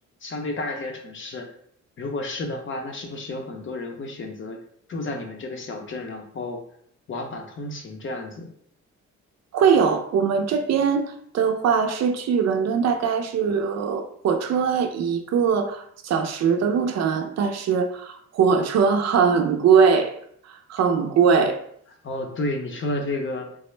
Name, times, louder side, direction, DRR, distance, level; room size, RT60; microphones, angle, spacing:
voice 1, 0.2-1.5 2.0-4.6 4.9-6.6 7.1-8.5 22.0-23.5, left 2 dB, 40° left, 3 dB, 0.7 m, -31 dB
voice 2, 9.5-20.1 20.4-21.6, right 6 dB, 60° right, 6 dB, 0.5 m, -21 dB
3.5 x 2.0 x 3.1 m, 0.65 s
cardioid pair, 90°, 30 cm